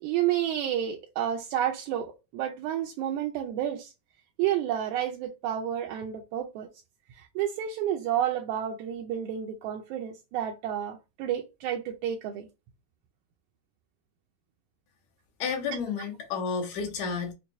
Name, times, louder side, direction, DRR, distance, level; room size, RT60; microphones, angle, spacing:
voice 1, 0.0-3.9 4.4-6.7 7.1-12.5, right 10 dB, 80° right, 1.9 m, -30 dB
voice 2, 15.4-17.3, left 5 dB, 70° left, 2.1 m, -31 dB
5.9 x 2.2 x 2.5 m
omnidirectional pair, 3.6 m